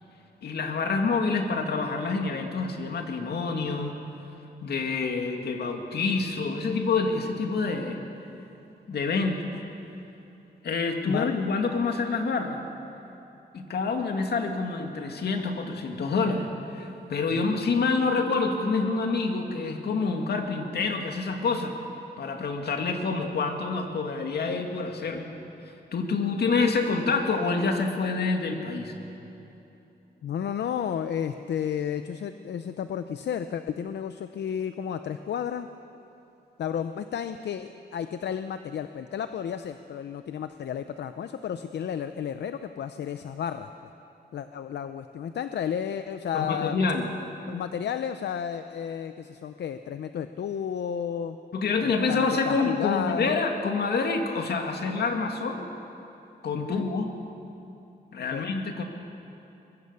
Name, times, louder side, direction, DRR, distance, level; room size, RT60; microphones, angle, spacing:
voice 1, 0.4-4.0 4.6-8.0 8.9-9.5 10.6-12.6 13.5-21.8 22.2-25.3 25.9-28.9 46.3-47.1 51.5-55.7 56.4-57.1 58.1-58.8, left 4 dB, 70° left, 3 dB, 2.3 m, -27 dB
voice 2, 11.0-11.3 17.3-17.5 30.2-35.7 36.6-43.7 44.3-46.8 47.5-51.4 51.8-53.4 56.5-56.9 58.3-58.5, left 8 dB, 90° left, 9 dB, 0.7 m, -32 dB
23.5 x 21.5 x 6.9 m, 3.0 s
wide cardioid pair, 155°, 17 cm